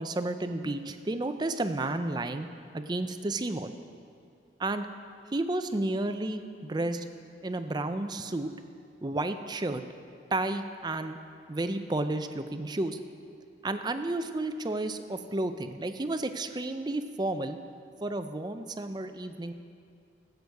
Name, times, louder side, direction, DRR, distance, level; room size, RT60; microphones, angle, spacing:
voice 1, 0.0-2.5 2.7-3.7 4.6-4.9 5.3-7.0 7.4-8.5 9.0-9.8 10.3-11.2 11.5-13.0 13.6-17.6 18.0-19.5, right 2 dB, 25° right, 9 dB, 0.5 m, -32 dB
18.5 x 8.0 x 4.7 m, 2.4 s
head